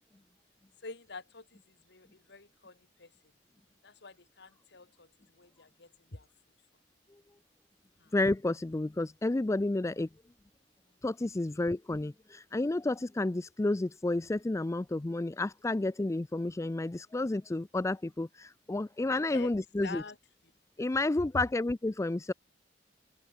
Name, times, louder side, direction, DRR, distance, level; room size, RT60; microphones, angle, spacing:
voice 1, 0.8-3.1 3.8-5.1 5.4-6.3 8.0-8.1 19.3-19.5 19.8-20.2, left 3 dB, 65° left, 1.9 m, -47 dB
voice 2, 8.1-10.1 11.0-20.0 20.8-22.3, left 2 dB, 15° left, 0.4 m, -31 dB
open air
head